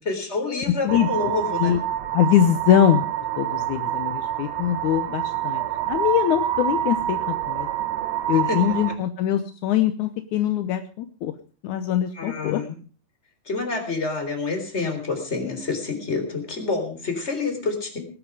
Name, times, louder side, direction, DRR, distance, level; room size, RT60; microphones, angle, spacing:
voice 1, 0.1-1.8 8.3-8.8 12.1-12.7 13.5-18.1, left 3 dB, 15° left, 5 dB, 3.6 m, -28 dB
voice 2, 0.8-1.3 1.6-1.8 2.1-3.1 3.4-7.7 8.3-11.3 11.6-12.6, left 10 dB, 80° left, 9 dB, 1.7 m, -22 dB
sound 1, 0.9-8.9, right 12 dB, 65° right, 1.8 m, -27 dB
18.5 x 11.5 x 4.8 m, 0.37 s
omnidirectional pair, 4.6 m